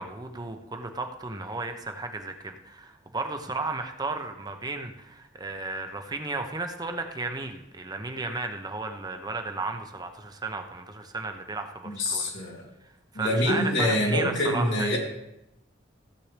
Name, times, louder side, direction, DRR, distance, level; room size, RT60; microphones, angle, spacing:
voice 1, 0.0-12.3 12.8-15.0, right 3 dB, 20° right, 5 dB, 0.8 m, -34 dB
voice 2, 12.0-12.7 13.1-15.0, left 1 dB, 80° left, -3 dB, 2.8 m, -25 dB
15.5 x 8.5 x 3.4 m, 0.87 s
head